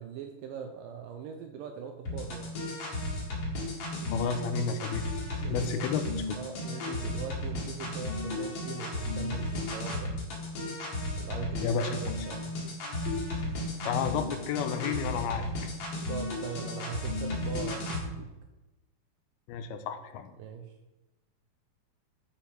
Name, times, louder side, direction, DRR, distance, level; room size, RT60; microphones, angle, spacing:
voice 1, 0.0-2.5 5.4-5.9 6.3-10.2 11.2-12.6 16.1-18.3 20.4-20.7, right 7 dB, 80° right, 5 dB, 2.0 m, -41 dB
sound 1, 2.1-18.0, left 2 dB, 45° left, 2.4 m, -34 dB
voice 2, 4.1-5.1 5.5-6.0 11.6-12.0 13.8-15.4 19.5-20.3, left 6 dB, 85° left, 8 dB, 2.6 m, -31 dB
11.5 x 4.7 x 5.2 m, 1.1 s
omnidirectional pair, 4.5 m